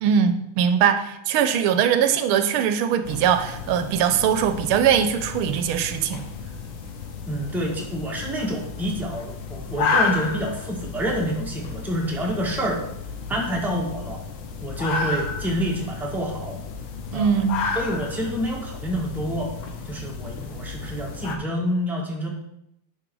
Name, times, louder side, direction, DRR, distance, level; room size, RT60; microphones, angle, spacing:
voice 1, 0.0-6.2 17.1-17.6, right 8 dB, 85° right, 10 dB, 1.5 m, -21 dB
sound 1, 3.0-21.4, left 5 dB, 75° left, 1.8 m, -32 dB
voice 2, 7.3-12.8 13.3-14.2 14.6-16.6 17.1-17.4 17.7-19.5 19.8-22.3, equal, ahead, -2 dB, 1.4 m, -28 dB
9.8 x 5.3 x 4.6 m, 0.78 s
omnidirectional pair, 2.4 m